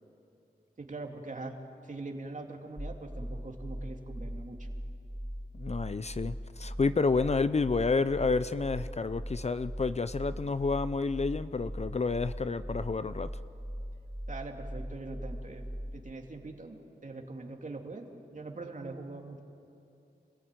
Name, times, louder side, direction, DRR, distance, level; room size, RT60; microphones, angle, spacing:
voice 1, 0.8-1.6 1.8-4.7 14.3-15.6 15.9-16.8 17.0-19.4, right 3 dB, 50° right, 2 dB, 2.8 m, -42 dB
sound 1, 2.8-16.1, equal, 10° left, 1.1 m, -40 dB
voice 2, 5.5-13.3, left 4 dB, 40° left, 14 dB, 0.6 m, -30 dB
27.0 x 16.0 x 9.2 m, 2.8 s
cardioid pair, 60°, 17 cm